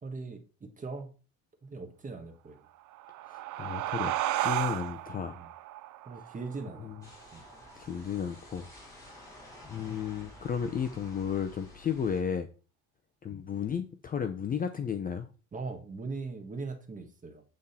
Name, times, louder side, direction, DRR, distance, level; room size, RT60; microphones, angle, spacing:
voice 1, 0.0-1.1 1.6-2.6 5.4-5.5 6.0-7.0 7.3-7.4 15.5-17.4, right 4 dB, 20° right, 1.4 m, -40 dB
sound 1, 2.8-8.0, right 15 dB, 55° right, 0.6 m, -34 dB
voice 2, 3.3-4.1 4.4-5.4 6.8-6.9 7.8-8.7 9.6-12.5 13.2-15.3, left 7 dB, 25° left, 0.5 m, -33 dB
sound 2, 7.0-12.2, left 1 dB, 10° left, 3.5 m, -51 dB
8.5 x 3.7 x 4.2 m
cardioid pair, 115°, 36 cm